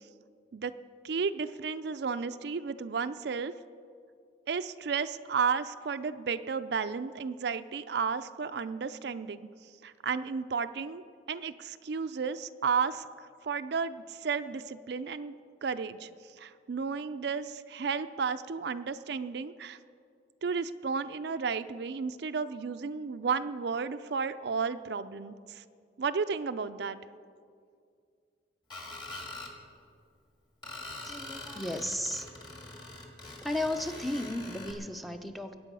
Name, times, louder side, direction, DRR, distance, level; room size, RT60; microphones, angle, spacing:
voice 1, 1.0-3.5 4.5-9.4 9.8-13.1 13.4-15.3 15.6-16.1 16.4-19.8 20.4-25.6 26.0-27.0, right 5 dB, 60° right, 11 dB, 0.4 m, -33 dB
Screech, 28.7-29.5 30.6-34.7, left 2 dB, 25° left, 1.8 m, -43 dB
voice 2, 31.0-32.3 33.4-35.5, left 1 dB, ahead, 4 dB, 0.6 m, -34 dB
21.5 x 8.9 x 5.4 m, 2.3 s
head